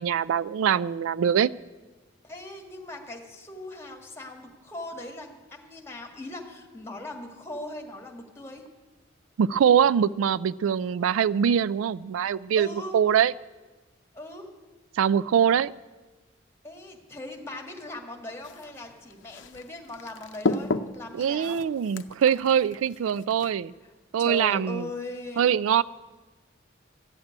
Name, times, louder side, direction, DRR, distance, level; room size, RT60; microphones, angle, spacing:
voice 1, 0.0-1.5 9.4-13.3 15.0-15.7 21.1-23.7 24.1-24.9 25.4-25.8, right 8 dB, 90° right, 19 dB, 0.3 m, -23 dB
voice 2, 2.2-8.6 12.5-13.0 14.1-14.5 16.6-21.6 24.2-25.5, left 1 dB, 15° left, 2 dB, 1.7 m, -39 dB
sound 1, 18.4-23.5, left 3 dB, 65° left, 0.6 m, -34 dB
14.5 x 7.4 x 9.7 m, 1.2 s
head